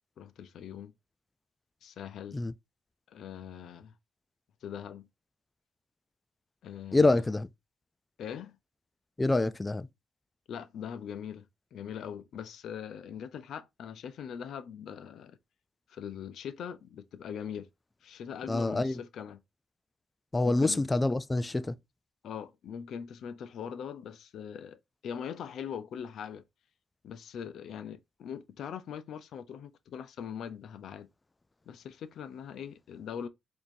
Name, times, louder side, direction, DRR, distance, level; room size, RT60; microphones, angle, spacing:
voice 1, 0.2-0.9 1.8-2.4 3.1-3.9 4.6-5.1 6.6-7.2 8.2-8.6 10.5-15.4 15.9-17.7 18.0-19.4 20.4-20.9 22.2-26.4 27.0-31.1 31.7-33.3, left 8 dB, 70° left, 0.5 m, -41 dB
voice 2, 6.9-7.5 9.2-9.9 18.5-19.0 20.3-21.8, left 2 dB, 20° left, 0.3 m, -26 dB
4.4 x 2.7 x 2.6 m
cardioid pair, 90°, 0 cm